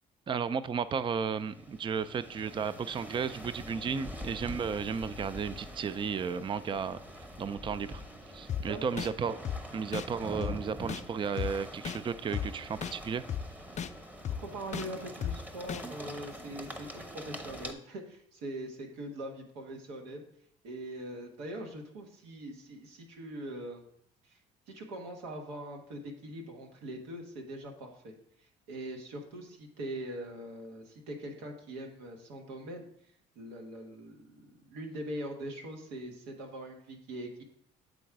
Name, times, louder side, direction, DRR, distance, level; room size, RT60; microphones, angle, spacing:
voice 1, 0.3-8.0 8.3-9.4 9.7-13.2, right 6 dB, 25° right, 14 dB, 0.4 m, -34 dB
sound 1, 0.9-17.7, equal, 10° right, 0.9 m, -45 dB
sound 2, 8.5-8.6 9.0-9.1 9.5-9.6 9.9-10.1 10.4-10.5 10.9-11.0 11.4-11.5 11.9-12.0 12.3-12.5 12.8-12.9 13.3-13.4 13.8-13.9 14.3-14.4 14.7-14.9 15.2-15.3 15.7-15.8, left 9 dB, 40° left, 0.5 m, -33 dB
voice 2, 8.5-9.0 14.4-20.2 20.6-23.8 24.2-24.4 24.7-28.1 28.4-32.9 33.4-37.4, right 1 dB, 85° right, 2 dB, 1.3 m, -42 dB
7.9 x 3.8 x 4.6 m, 0.66 s
supercardioid pair, 70°, 19 cm